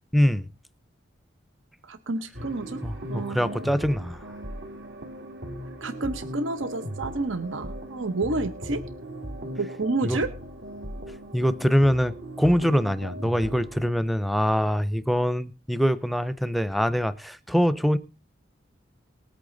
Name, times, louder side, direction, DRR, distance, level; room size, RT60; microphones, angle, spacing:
voice 1, 0.1-0.4 2.8-4.2 10.0-10.2 11.3-18.0, equal, ahead, 0.6 m, -24 dB
voice 2, 1.8-2.8 3.1-3.6 5.8-8.8 9.6-10.3, right 2 dB, 85° right, 0.9 m, -29 dB
sound 1, 2.3-13.9, equal, 65° right, 2.2 m, -38 dB
19.5 x 8.4 x 3.9 m
head